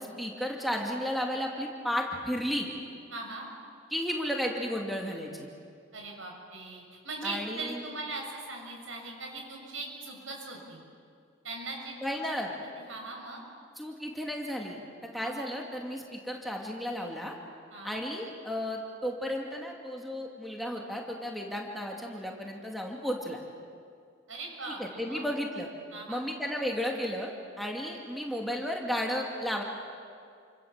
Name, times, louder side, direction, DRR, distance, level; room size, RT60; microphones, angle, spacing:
voice 1, 0.0-2.7 3.9-5.5 7.2-7.8 12.0-12.5 13.8-14.8 15.1-17.3 17.8-23.4 24.8-25.7 26.1-29.6, equal, ahead, 0 dB, 2.4 m, -33 dB
voice 2, 3.1-3.5 5.9-10.8 11.4-12.2 12.8-13.4 15.1-15.3 17.7-18.0 24.3-25.3 25.9-26.2, right 3 dB, 85° right, 1 dB, 6.9 m, -40 dB
29.0 x 26.0 x 7.4 m, 2.3 s
head